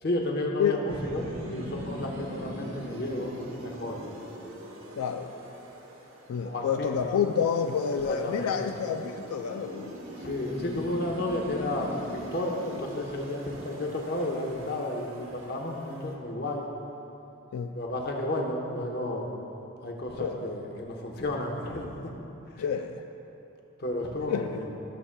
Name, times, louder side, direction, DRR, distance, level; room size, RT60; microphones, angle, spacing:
voice 1, 0.0-3.3 3.6-4.0 6.4-7.2 7.9-8.7 10.2-16.6 17.7-19.3 19.8-22.1 22.5-22.7 23.8-24.7, left 1 dB, 50° left, 0 dB, 0.9 m, -32 dB
sound 1, 0.9-16.1, right 1 dB, 65° right, 1.0 m, -42 dB
voice 2, 5.0-5.3 6.3-9.9 17.5-17.7 20.2-20.5 22.6-23.0 24.3-24.5, left 7 dB, 90° left, 6 dB, 0.3 m, -28 dB
14.0 x 7.1 x 2.2 m, 2.8 s
head